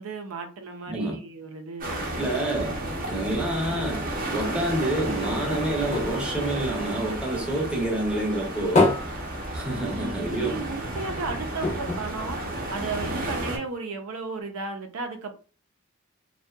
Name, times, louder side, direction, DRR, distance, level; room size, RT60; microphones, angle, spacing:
voice 1, 0.0-2.7 9.7-15.4, right 3 dB, 85° right, 0.5 m, -35 dB
voice 2, 0.9-1.2 2.2-2.8 3.1-9.0 9.5-10.6, right 1 dB, 5° right, 0.6 m, -28 dB
sound 1, 1.8-13.6, right 1 dB, 45° right, 0.6 m, -32 dB
sound 2, 5.0-7.7 8.0-10.3 10.6-10.7 11.0-11.1 11.6-13.1 13.7-13.8, left 2 dB, 35° left, 0.6 m, -28 dB
2.6 x 2.2 x 2.2 m
head